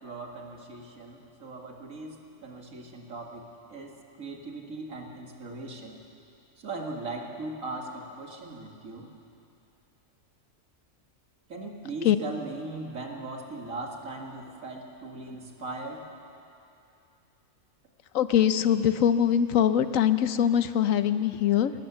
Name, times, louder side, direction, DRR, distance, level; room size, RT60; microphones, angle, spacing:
voice 1, 0.0-6.0 6.6-9.1 11.5-16.1, right 2 dB, 90° right, 1 dB, 2.5 m, -39 dB
voice 2, 18.1-21.7, left 9 dB, 80° left, 12 dB, 1.1 m, -23 dB
20.0 x 19.0 x 7.2 m, 2.6 s
omnidirectional pair, 1.4 m